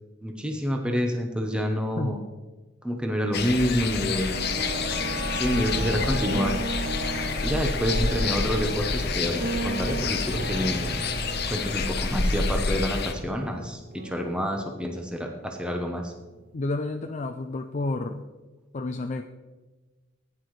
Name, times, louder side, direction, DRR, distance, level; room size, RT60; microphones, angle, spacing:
voice 1, 0.2-2.2 2.8-4.5 5.3-6.6 7.4-10.9 11.5-16.1, equal, 5° right, 2 dB, 0.9 m, -28 dB
sound 1, 3.3-13.1, left 4 dB, 55° left, 0.9 m, -28 dB
sound 2, 4.3-17.4 17.6-17.7, right 2 dB, 45° right, 0.6 m, -36 dB
sound 3, 4.9-11.2 11.8-13.1 14.5-14.6, left 1 dB, 65° right, 3.6 m, -41 dB
voice 2, 16.5-18.3 18.7-19.2, left 2 dB, 35° left, 5 dB, 0.4 m, -30 dB
15.5 x 9.7 x 3.2 m, 1.2 s
head